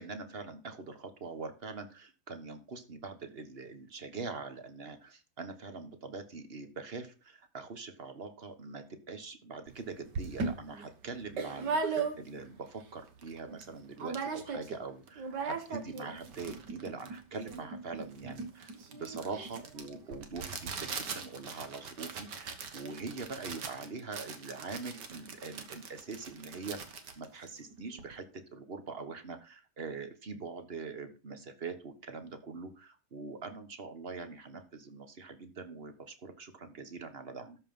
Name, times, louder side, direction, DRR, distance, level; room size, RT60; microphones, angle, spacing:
voice 1, 0.0-26.8 27.2-28.3 28.5-37.6, right 4 dB, 35° right, 9 dB, 1.3 m, -43 dB
sound 1, 9.7-9.8 10.1-12.5 12.9-13.0 13.2-13.7 14.0-14.8 15.1-28.1, right 4 dB, 65° right, 1.9 m, -39 dB
13.0 x 5.5 x 5.5 m, 0.33 s
omnidirectional pair, 2.0 m